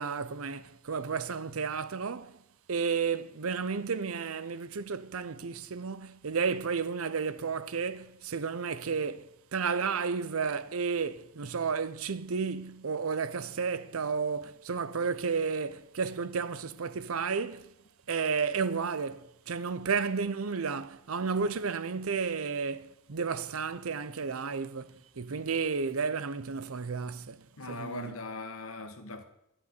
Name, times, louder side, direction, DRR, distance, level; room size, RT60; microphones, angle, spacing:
voice 1, 0.0-2.4 2.7-17.7 18.1-28.2, right 5 dB, 80° right, 0.7 m, -32 dB
voice 2, 27.6-29.2, left 3 dB, 85° left, 1.7 m, -40 dB
10.5 x 7.8 x 9.7 m
head